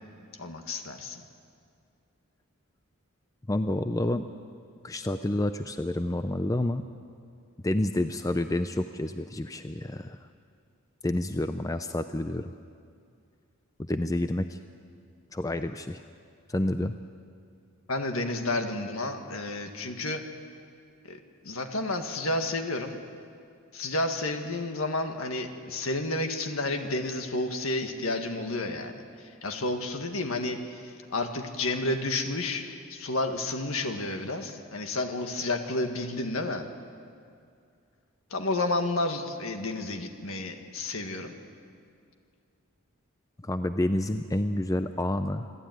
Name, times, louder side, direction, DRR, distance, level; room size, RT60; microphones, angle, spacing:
voice 1, 0.4-1.2 17.9-20.2 21.1-21.2 21.4-23.0 23.7-29.0 29.4-36.7 38.3-41.3, left 2 dB, 70° left, 5 dB, 1.8 m, -31 dB
voice 2, 3.5-4.2 4.8-6.8 7.6-10.2 11.0-12.5 13.9-14.6 15.3-16.0 16.5-16.9 43.4-45.5, left 1 dB, 15° left, 9 dB, 0.4 m, -29 dB
27.0 x 12.5 x 9.3 m, 2.3 s
head